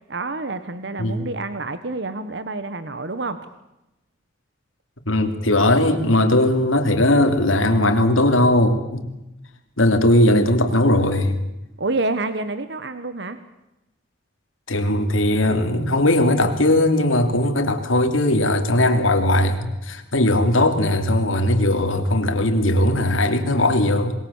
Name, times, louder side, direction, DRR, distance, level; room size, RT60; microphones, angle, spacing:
voice 1, 0.1-3.5 11.8-13.4, right 2 dB, 60° right, 11 dB, 1.2 m, -28 dB
voice 2, 5.1-9.0 9.8-11.4 14.7-24.1, left 1 dB, 90° left, 6 dB, 3.1 m, -19 dB
27.0 x 21.5 x 7.3 m, 0.93 s
head